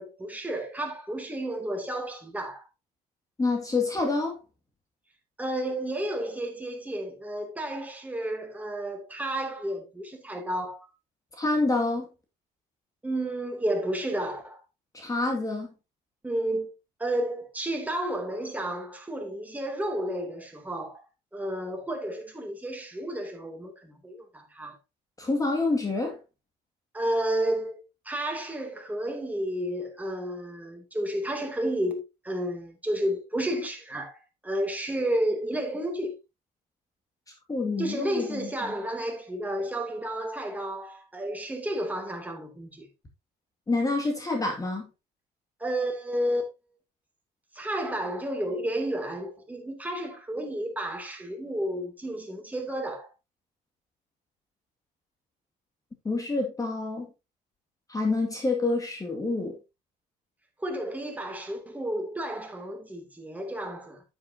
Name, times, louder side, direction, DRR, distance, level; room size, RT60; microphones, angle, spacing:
voice 1, 0.0-2.7 5.4-10.9 13.0-14.6 16.2-16.7 17.0-21.0 21.3-24.8 26.9-36.2 37.8-42.9 45.6-46.5 47.5-53.1 60.6-64.0, right 1 dB, 10° right, 2.7 m, -31 dB
voice 2, 3.4-4.4 11.4-12.1 14.9-15.7 25.2-26.2 37.5-38.5 43.7-44.9 56.0-57.1 57.9-59.6, left 3 dB, 20° left, 2.2 m, -27 dB
9.3 x 8.2 x 2.8 m
cardioid pair, 110°, 17 cm